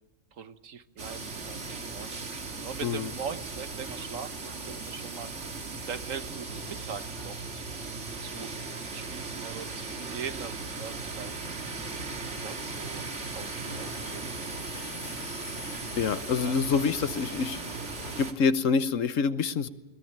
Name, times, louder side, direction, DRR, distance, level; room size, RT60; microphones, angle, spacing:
voice 1, 0.3-2.1 2.6-7.5 8.2-8.5 8.9-11.7 12.2-13.1 13.3-14.3 16.4-16.6, right 7 dB, 90° right, 11 dB, 1.5 m, -41 dB
sound 1, 1.0-18.3, right 3 dB, 65° right, 2.4 m, -37 dB
sound 2, 12.4-18.3, left 4 dB, 65° left, 2.0 m, -47 dB
voice 2, 15.9-17.6 18.2-19.7, left 5 dB, 80° left, 13 dB, 1.4 m, -26 dB
21.5 x 21.5 x 8.8 m, 1.1 s
omnidirectional pair, 1.3 m